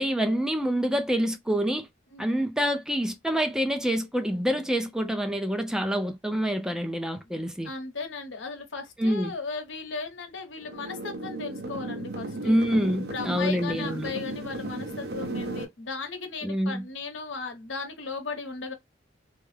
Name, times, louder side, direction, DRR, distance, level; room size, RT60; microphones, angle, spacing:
voice 1, 0.0-1.9 2.2-7.7 9.0-9.3 12.4-14.1 16.4-16.8, equal, 5° right, 0.4 m, -26 dB
voice 2, 7.6-12.6 13.1-18.7, left 4 dB, 90° left, 0.9 m, -36 dB
sound 1, 10.6-15.6, right 2 dB, 55° right, 0.7 m, -35 dB
3.5 x 2.0 x 3.1 m
head